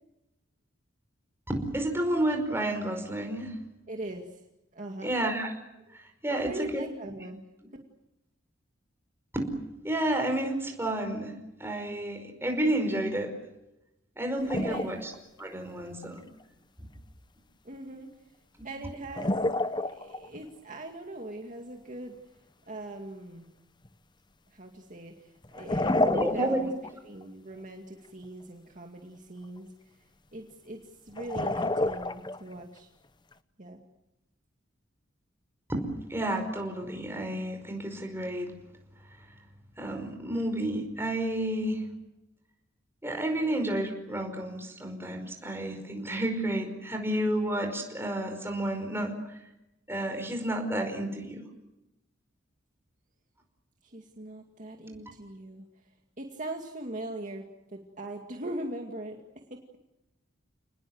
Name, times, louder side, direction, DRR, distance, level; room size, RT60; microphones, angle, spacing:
voice 1, 1.5-3.5 5.0-5.5 5.9-6.8 9.3-9.5 9.8-11.3 11.6-13.3 14.2-15.1 15.4-16.2 18.6-18.7 26.0-26.7 35.7-38.5 39.8-41.8 43.0-49.3 49.9-51.5 54.9-55.0, right 1 dB, 15° right, 4 dB, 5.2 m, -31 dB
voice 2, 3.9-4.4 4.7-5.2 5.9-6.0 6.3-7.4 14.5-15.0 17.6-18.1 18.6-22.2 22.7-23.5 24.5-26.7 27.0-30.0 30.3-32.9 33.6-33.8 53.8-55.7 56.2-57.5 57.7-59.2 59.5-59.8, right 1 dB, 40° right, 2 dB, 2.2 m, -41 dB
sound 1, 14.5-15.2 15.5-15.6 16.0-16.1 19.0-20.4 23.8-23.9 25.4-26.9 27.2-27.3 31.2-32.6, left 2 dB, 25° left, 0.9 m, -29 dB
29.5 x 20.0 x 8.0 m, 0.93 s
head